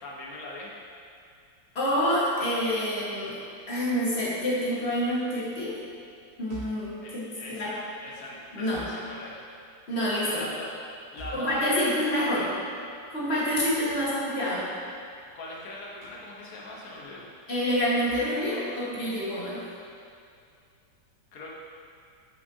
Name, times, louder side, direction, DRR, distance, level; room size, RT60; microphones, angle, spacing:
voice 1, 0.0-0.7 7.0-9.4 10.2-10.8 11.1-12.5 15.3-17.3 21.3-21.5, left 1 dB, 55° left, -3 dB, 1.4 m, -41 dB
voice 2, 1.8-3.4 3.7-5.8 6.4-7.7 8.5-8.9 9.9-10.4 11.3-12.5 13.1-14.7 17.5-19.6, equal, 35° left, -8 dB, 1.7 m, -27 dB
sound 1, 6.5-6.9 8.7-9.0 11.2-11.5 13.9-14.1 16.0-16.3 18.1-18.3, right 2 dB, 65° right, 2.3 m, -44 dB
8.4 x 5.8 x 2.8 m, 2.4 s
omnidirectional pair, 2.1 m